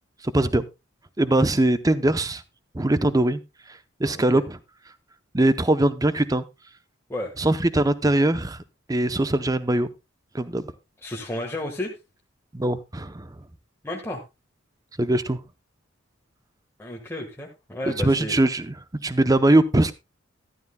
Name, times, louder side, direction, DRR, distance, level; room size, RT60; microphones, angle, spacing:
voice 1, 0.3-0.6 1.2-2.4 2.7-3.4 4.0-4.6 5.3-6.4 7.4-8.6 8.9-9.9 10.3-10.7 12.5-13.3 15.0-15.4 17.9-18.7 19.0-19.9, right 1 dB, 20° right, 0.7 m, -21 dB
voice 2, 4.0-4.4 7.1-7.3 11.0-11.9 13.8-14.2 16.8-18.4, left 1 dB, 10° left, 1.4 m, -32 dB
13.5 x 12.0 x 2.2 m
head